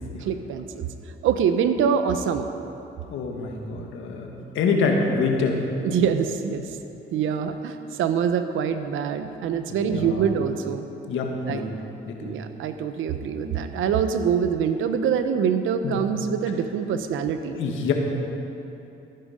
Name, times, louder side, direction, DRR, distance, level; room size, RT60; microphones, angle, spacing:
voice 1, 0.2-0.9 1.2-2.5 5.8-6.7 7.1-10.9 11.5-11.6 12.2-17.6, right 7 dB, 80° right, 9 dB, 0.8 m, -24 dB
voice 2, 3.1-5.6 9.7-10.2 11.1-11.7 12.1-12.4 15.8-16.0 17.5-17.9, left 4 dB, 80° left, 1 dB, 1.8 m, -26 dB
15.0 x 10.5 x 5.1 m, 2.9 s
cardioid pair, 75°, 20 cm